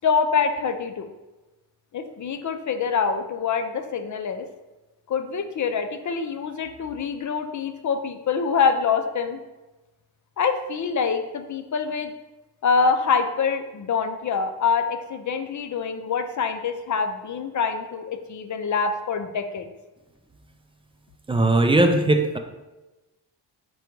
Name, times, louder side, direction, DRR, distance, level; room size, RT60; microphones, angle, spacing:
voice 1, 0.0-1.1 1.9-4.5 5.1-9.4 10.4-12.1 12.6-19.7, left 5 dB, 45° left, 8 dB, 0.5 m, -25 dB
voice 2, 21.3-22.4, right 2 dB, 15° right, 5 dB, 0.4 m, -19 dB
5.0 x 2.3 x 4.5 m, 1.1 s
cardioid pair, 85°, 43 cm